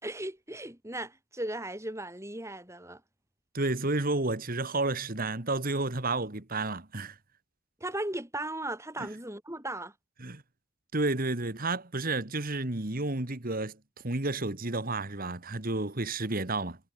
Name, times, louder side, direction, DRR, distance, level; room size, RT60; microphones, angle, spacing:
voice 1, 0.0-3.0 7.8-9.9, right 1 dB, 15° right, 5.3 m, -37 dB
voice 2, 3.5-7.2 10.2-10.4 10.9-13.8 14.0-16.8, right 2 dB, 40° right, 1.8 m, -31 dB
head